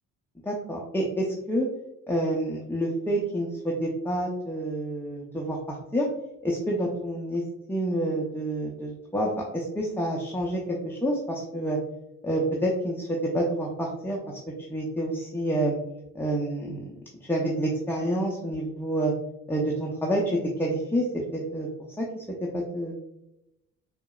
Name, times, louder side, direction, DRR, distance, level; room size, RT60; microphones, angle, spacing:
voice 1, 0.4-1.7 2.1-6.1 6.4-7.4 7.7-11.8 12.2-14.4 14.7-15.8 16.1-16.8 17.2-19.1 19.5-21.7 22.0-22.2 22.5-22.9, right 1 dB, 5° left, -3 dB, 0.6 m, -28 dB
4.5 x 2.1 x 2.3 m, 0.88 s
hypercardioid pair, 50°, 42 cm